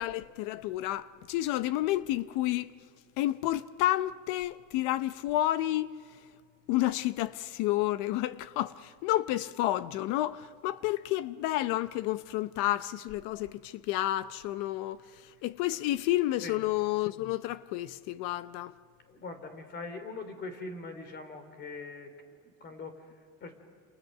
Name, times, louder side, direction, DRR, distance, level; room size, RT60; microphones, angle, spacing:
voice 1, 0.0-2.8 3.2-5.9 6.7-18.7, left 15 dB, 60° left, 0.7 m, -30 dB
voice 2, 19.1-22.1 22.4-23.5, left 3 dB, 30° left, 3.2 m, -42 dB
28.5 x 27.5 x 6.6 m
cardioid pair, 160°, 35 cm